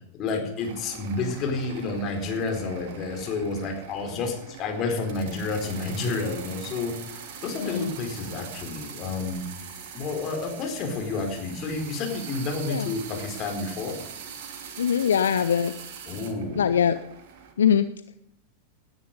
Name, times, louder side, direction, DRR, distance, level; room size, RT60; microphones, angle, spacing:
voice 1, 0.1-9.4 9.9-14.0 16.1-16.7, left 3 dB, 35° left, 3 dB, 4.3 m, -30 dB
sound 1, 0.6-17.5, right 7 dB, 50° right, 2.7 m, -42 dB
voice 2, 7.6-7.9 12.7-12.9 14.8-15.7 16.6-17.0 17.6-17.9, left 8 dB, 65° left, 12 dB, 0.6 m, -22 dB
19.0 x 10.0 x 5.4 m, 0.74 s
figure-of-eight pair, 90°, 0 cm